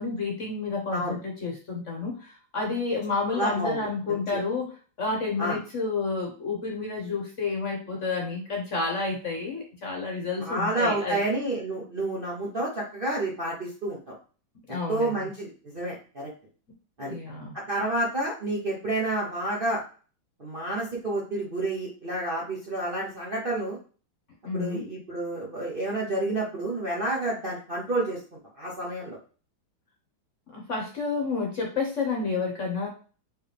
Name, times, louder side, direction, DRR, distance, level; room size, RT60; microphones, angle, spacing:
voice 1, 0.0-11.2 14.7-15.3 17.1-17.5 24.4-24.8 30.5-32.9, left 4 dB, 45° left, 0 dB, 1.2 m, -30 dB
voice 2, 3.3-3.8 4.1-4.2 5.4-5.6 10.4-14.1 14.7-16.3 17.0-17.2 17.7-19.8 20.4-23.8 24.5-28.2 28.5-29.2, right 1 dB, 40° right, -5 dB, 0.8 m, -29 dB
4.7 x 3.2 x 3.3 m, 0.38 s
omnidirectional pair, 2.1 m